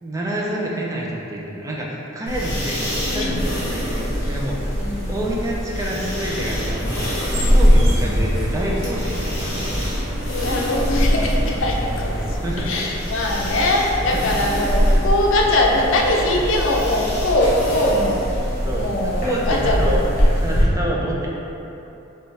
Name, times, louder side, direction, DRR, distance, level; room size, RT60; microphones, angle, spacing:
voice 1, 0.0-4.6 5.1-9.8 12.4-12.7 14.2-15.0 18.6-18.8 19.2-20.0 20.3-21.3, right 1 dB, 15° right, -4 dB, 0.4 m, -28 dB
sound 1, 2.3-20.6, equal, 45° left, 1.3 m, -22 dB
voice 2, 3.1-3.5 4.2-4.4 4.7-5.2 7.3-8.1 10.3-18.2 18.7-19.9, left 1 dB, 75° left, -1 dB, 0.5 m, -22 dB
sound 2, 6.1-12.4, equal, 55° right, 1.0 m, -32 dB
5.2 x 2.4 x 3.2 m, 2.9 s
head